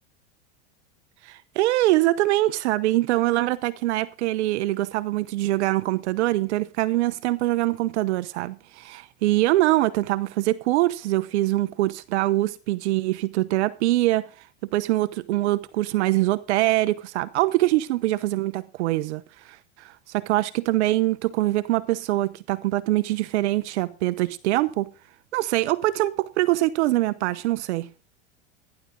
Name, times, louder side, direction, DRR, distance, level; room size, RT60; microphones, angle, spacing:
voice 1, 1.2-14.3 14.7-24.9 25.3-27.9, right 17 dB, 75° right, 1.0 m, -23 dB
15.0 x 11.0 x 3.8 m
hypercardioid pair, 105°, 34 cm